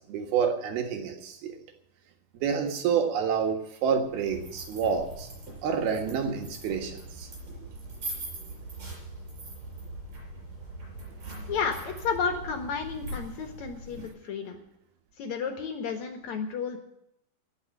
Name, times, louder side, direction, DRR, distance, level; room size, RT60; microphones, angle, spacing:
voice 1, 0.0-1.6 2.3-5.3 5.6-7.3 7.6-7.7, right 6 dB, 80° right, 3 dB, 3.5 m, -28 dB
sound 1, 4.0-14.1, right 2 dB, 45° right, 7.2 m, -41 dB
voice 2, 11.5-14.6 15.2-16.8, left 6 dB, 55° left, 4 dB, 2.5 m, -32 dB
19.0 x 6.4 x 9.0 m, 0.81 s
omnidirectional pair, 4.3 m